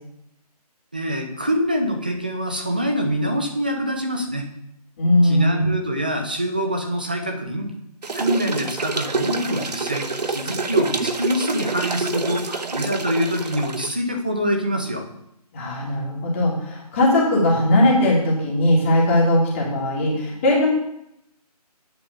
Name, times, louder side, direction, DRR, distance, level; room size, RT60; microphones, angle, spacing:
voice 1, 0.9-4.5 5.2-7.7 8.1-15.1, equal, 15° right, 3 dB, 0.5 m, -25 dB
voice 2, 5.0-5.7 15.5-20.7, left 1 dB, 20° left, -4 dB, 1.9 m, -19 dB
sound 1, 8.0-13.9, right 4 dB, 85° right, 1.0 m, -27 dB
8.7 x 3.6 x 6.5 m, 0.79 s
figure-of-eight pair, 170°, 20 cm